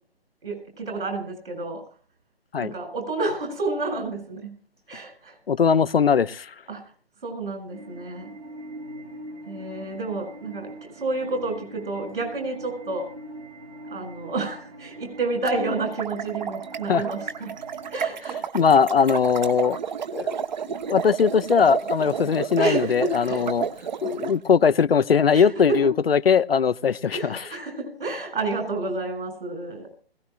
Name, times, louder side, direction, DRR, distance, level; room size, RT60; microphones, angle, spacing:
voice 1, 0.4-1.8 2.6-4.5 4.9-5.4 6.7-6.8 7.2-8.3 9.5-13.1 13.9-17.5 17.9-18.4 22.6-23.4 25.3-25.8 27.1-29.9, right 3 dB, 60° right, 5 dB, 7.3 m, -30 dB
voice 2, 5.5-6.5 16.9-17.1 18.5-19.8 20.1-20.4 20.7-23.7 24.0-27.5, left 6 dB, 65° left, 15 dB, 0.7 m, -20 dB
sound 1, 7.7-18.1, right 1 dB, 80° right, 3.9 m, -43 dB
sound 2, 15.8-24.3, right 7 dB, 45° right, 1.3 m, -31 dB
21.0 x 17.0 x 2.5 m, 0.41 s
figure-of-eight pair, 140°, 32 cm